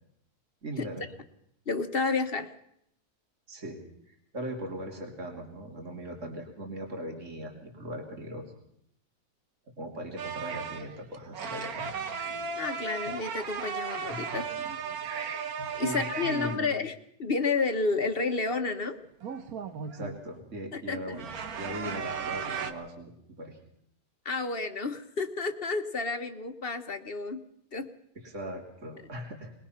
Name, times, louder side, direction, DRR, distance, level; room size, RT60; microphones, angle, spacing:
voice 1, 0.6-1.0 3.5-3.8 4.1-8.4 9.8-12.0 14.1-14.2 15.8-16.7 19.9-23.6 28.1-29.5, right 1 dB, 50° right, 1 dB, 3.2 m, -39 dB
voice 2, 1.7-2.5 12.6-14.5 15.7-16.9 17.2-19.0 20.7-21.2 24.2-27.4 27.7-27.9, left 4 dB, 40° left, 8 dB, 1.2 m, -30 dB
sound 1, 10.2-16.6 19.2-20.2 21.1-22.7, right 6 dB, 70° right, 1.6 m, -35 dB
21.5 x 21.5 x 5.8 m, 0.74 s
omnidirectional pair, 1.7 m